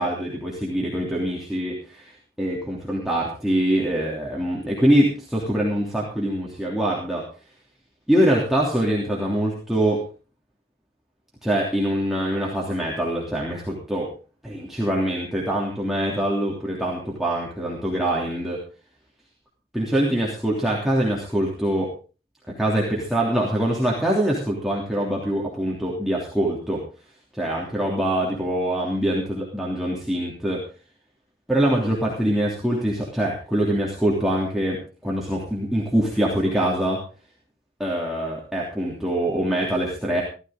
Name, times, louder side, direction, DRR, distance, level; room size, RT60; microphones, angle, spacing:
voice 1, 0.0-2.1 2.4-7.3 8.1-10.0 11.4-14.1 14.4-18.6 19.7-21.9 22.6-26.8 27.3-30.6 31.5-37.0 37.8-40.2, right 1 dB, ahead, -5 dB, 3.1 m, -24 dB
17.0 x 13.0 x 3.8 m, 0.35 s
head